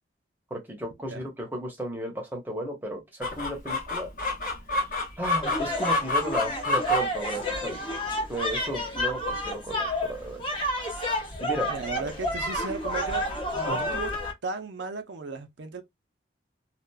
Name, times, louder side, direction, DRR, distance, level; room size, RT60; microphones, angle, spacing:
voice 1, 0.5-3.0 3.3-4.1 5.2-7.9 8.3-10.4 11.4-11.7 13.7-14.0, right 1 dB, 10° right, 0.9 m, -34 dB
Chicken rooster, 3.2-14.3, left 2 dB, 45° left, 1.2 m, -32 dB
sound 1, 5.4-14.3, equal, 25° left, 0.9 m, -30 dB
voice 2, 11.6-14.1 14.4-15.8, right 4 dB, 75° right, 0.6 m, -36 dB
2.8 x 2.4 x 2.2 m
head